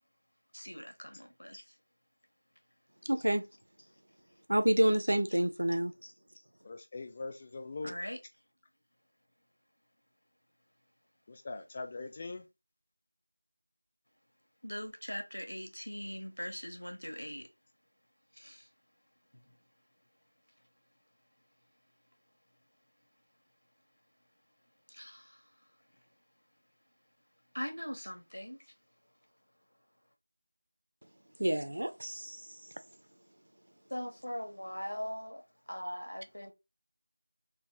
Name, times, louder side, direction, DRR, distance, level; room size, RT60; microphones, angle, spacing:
voice 1, 0.5-1.7 6.0-6.1 7.8-8.2 14.6-17.5 18.3-18.7 19.3-19.5 24.9-25.4 27.5-28.7 33.9-36.5, equal, 85° left, 1.1 m, -41 dB
voice 2, 3.1-3.4 4.5-5.9 31.4-32.4, right 1 dB, 60° right, 0.5 m, -28 dB
voice 3, 6.7-7.9 11.4-12.4, left 3 dB, 20° left, 0.3 m, -41 dB
3.3 x 2.4 x 3.3 m
figure-of-eight pair, 175°, 0 cm